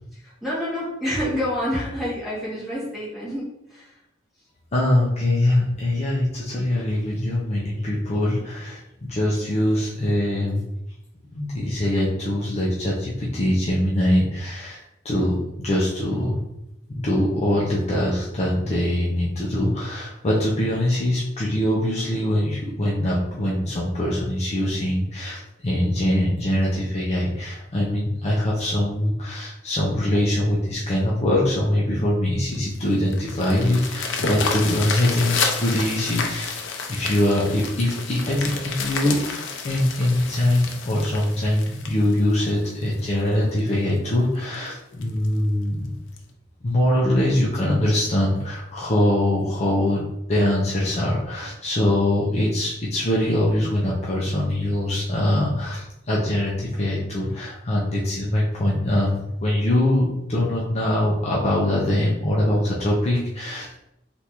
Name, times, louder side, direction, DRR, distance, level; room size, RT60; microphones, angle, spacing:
voice 1, 0.1-4.0 32.5-32.7, equal, ahead, -9 dB, 1.4 m, -28 dB
voice 2, 4.7-10.6 11.3-16.4 16.9-36.6 36.9-45.9 46.6-63.7, left 1 dB, 35° left, -5 dB, 0.5 m, -23 dB
sound 1, 32.5-43.0 43.6-43.7 44.1-44.2 44.5-44.6 45.0-45.3 46.2-46.3, left 4 dB, 80° left, 0.5 m, -30 dB
3.3 x 2.5 x 2.9 m, 0.82 s
head